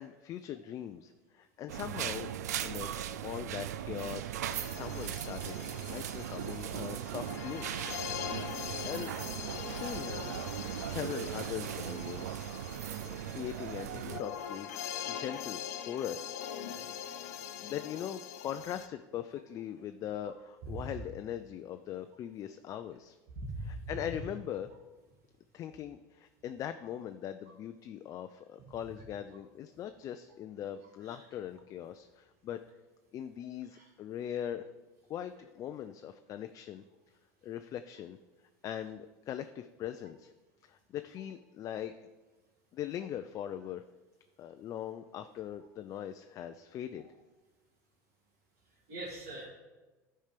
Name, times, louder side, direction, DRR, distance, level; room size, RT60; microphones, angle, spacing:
voice 1, 0.0-2.9 3.2-5.6 5.8-7.7 8.8-12.3 13.1-16.8 17.6-23.2 23.6-24.7 25.5-32.6 33.1-34.7 35.1-36.8 37.4-38.2 38.6-40.3 40.6-41.9 42.7-43.8 44.4-47.1, left 10 dB, 40° left, 8 dB, 0.4 m, -41 dB
sound 1, 1.7-14.2, right 11 dB, 85° right, 0.4 m, -38 dB
sound 2, 4.5-18.9, left 9 dB, 80° left, 0.6 m, -43 dB
voice 2, 23.4-23.8 28.6-28.8 31.1-31.2 33.7-33.8 48.9-49.5, right 2 dB, 65° right, -6 dB, 2.3 m, -41 dB
11.5 x 4.4 x 5.1 m, 1.2 s
hypercardioid pair, 90°, 9 cm